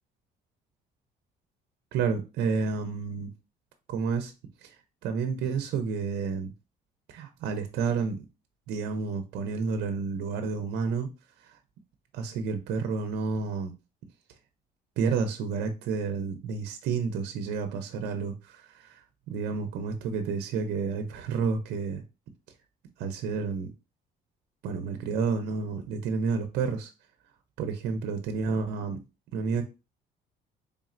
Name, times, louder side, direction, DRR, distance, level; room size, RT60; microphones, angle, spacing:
voice 1, 1.9-3.3 3.9-4.3 4.6-4.8 5.0-6.5 7.1-8.2 8.7-11.1 11.4-11.6 12.1-13.7 15.0-22.0 23.0-23.7 24.6-26.9 27.6-29.0 29.3-29.6, right 5 dB, 75° right, 0.6 m, -30 dB
4.0 x 3.5 x 2.5 m
cardioid pair, 110°, 17 cm